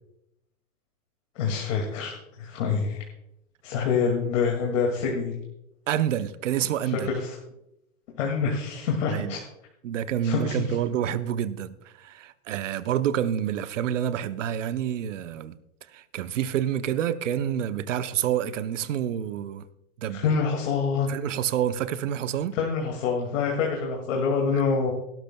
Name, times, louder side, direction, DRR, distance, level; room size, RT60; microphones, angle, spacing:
voice 1, 1.4-3.0 3.6-5.3 6.8-7.3 8.2-9.4 10.2-10.8 20.1-21.1 22.6-24.9, left 5 dB, 55° left, 2.2 m, -26 dB
voice 2, 5.9-7.1 9.1-9.4 9.8-15.6 15.9-19.7 20.0-20.2 21.1-22.5, right 10 dB, 55° right, 0.8 m, -28 dB
17.5 x 12.0 x 2.2 m
supercardioid pair, 170°, 44 cm